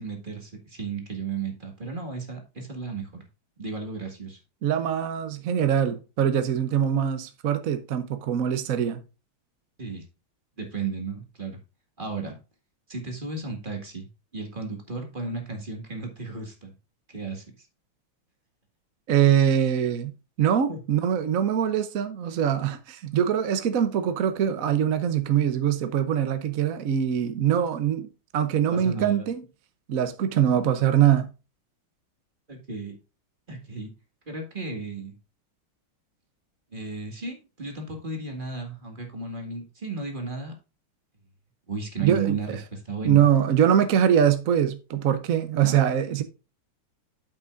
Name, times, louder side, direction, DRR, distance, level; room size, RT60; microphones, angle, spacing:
voice 1, 0.0-3.2 3.6-4.4 9.8-10.0 10.6-11.6 12.0-12.4 12.9-14.1 14.3-16.7 17.1-17.7 20.7-20.8 28.7-29.2 32.5-32.9 33.5-33.9 34.3-35.1 36.7-40.5 41.7-43.2 45.6-45.8, right 4 dB, 25° right, 1.9 m, -34 dB
voice 2, 4.6-9.0 19.1-20.1 20.4-29.4 29.9-31.3 42.0-42.4 43.0-46.2, right 9 dB, 60° right, 0.9 m, -23 dB
8.5 x 8.1 x 2.5 m
omnidirectional pair, 2.4 m